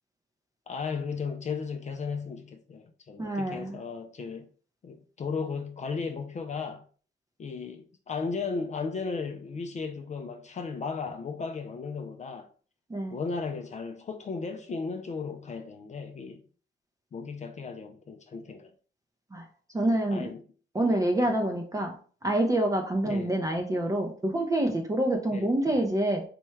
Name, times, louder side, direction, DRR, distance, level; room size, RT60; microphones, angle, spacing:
voice 1, 0.7-4.5 4.8-6.8 7.4-12.5 13.1-16.4 17.1-18.7 20.1-20.4 23.1-23.4 25.3-25.5, left 5 dB, 35° left, 0.5 m, -35 dB
voice 2, 3.2-3.8 12.9-13.1 19.3-19.4 19.7-20.2 20.7-21.9 22.2-26.2, right 1 dB, 15° right, 0.6 m, -27 dB
4.4 x 2.2 x 3.1 m
cardioid pair, 90°, 20 cm